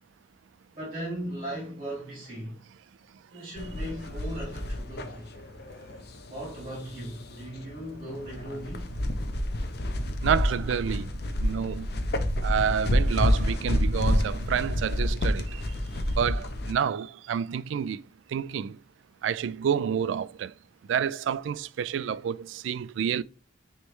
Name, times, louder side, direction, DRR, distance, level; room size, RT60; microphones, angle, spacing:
voice 1, 0.7-2.6 3.3-5.3 6.3-8.9, right 1 dB, 30° right, 2.9 m, -37 dB
sound 1, 3.6-16.7, left 1 dB, 60° left, 0.8 m, -29 dB
voice 2, 10.2-11.1 11.4-12.0 12.4-15.6 16.1-18.0 18.3-18.8 19.2-20.5 20.9-23.2, right 8 dB, 85° right, 0.3 m, -29 dB
9.4 x 3.3 x 3.1 m
head